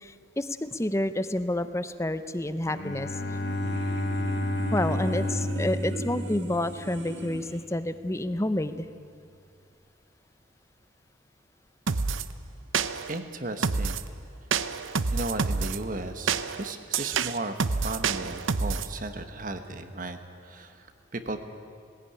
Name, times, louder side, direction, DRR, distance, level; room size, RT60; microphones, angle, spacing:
voice 1, 0.0-3.1 4.7-8.9, left 1 dB, 15° left, 12 dB, 0.7 m, -29 dB
Bowed string instrument, 2.6-7.0, left 1 dB, 55° left, 1.5 m, -31 dB
sound 1, 2.7-7.6, right 1 dB, 55° right, 2.1 m, -39 dB
sound 2, 11.9-12.3 12.7-13.2 13.6-14.1 14.5-15.8 16.3-18.9, right 5 dB, 75° right, 0.7 m, -28 dB
voice 2, 13.1-14.0 15.1-21.4, right 2 dB, 40° right, 8 dB, 1.2 m, -35 dB
19.0 x 17.0 x 10.0 m, 2.4 s
head